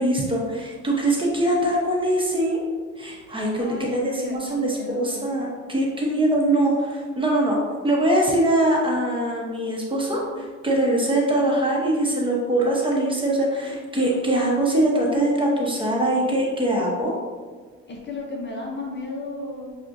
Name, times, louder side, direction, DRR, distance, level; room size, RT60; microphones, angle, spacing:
voice 1, 0.0-2.6 3.0-7.6 7.8-17.2, right 1 dB, 15° right, -3 dB, 0.9 m, -22 dB
voice 2, 3.5-5.3 17.9-19.8, left 2 dB, 35° left, -1 dB, 0.7 m, -34 dB
6.0 x 2.4 x 2.6 m, 1.5 s
cardioid pair, 90°, 30 cm